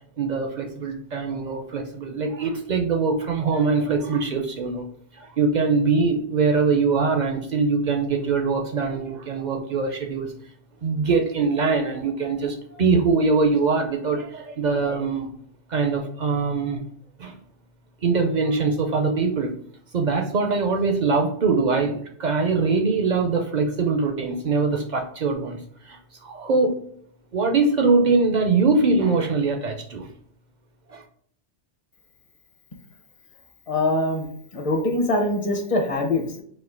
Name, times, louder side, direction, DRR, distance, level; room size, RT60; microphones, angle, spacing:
voice 1, 0.2-4.9 5.1-10.3 10.8-15.3 15.7-16.8 17.2-17.4 18.0-19.5 19.9-26.8 27.3-30.1 30.9-31.0, right 4 dB, 55° right, 3 dB, 0.6 m, -23 dB
voice 2, 33.7-34.3 34.5-36.4, left 2 dB, 35° left, 2 dB, 0.7 m, -23 dB
4.4 x 2.5 x 3.7 m, 0.63 s
omnidirectional pair, 1.1 m